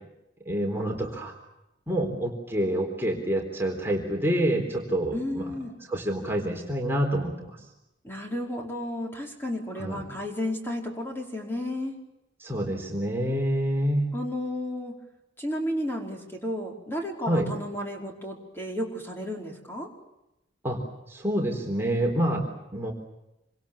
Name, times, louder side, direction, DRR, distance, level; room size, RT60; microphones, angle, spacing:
voice 1, 0.5-1.3 1.9-5.5 5.9-7.6 9.8-10.0 12.4-14.1 17.2-17.5 20.6-20.8 21.1-22.4 22.7-22.9, right 1 dB, 15° right, 0 dB, 3.9 m, -27 dB
voice 2, 5.1-5.7 8.0-11.9 14.1-14.9 15.4-19.9, left 1 dB, 10° left, 0 dB, 5.0 m, -32 dB
27.5 x 26.0 x 7.3 m, 0.91 s
head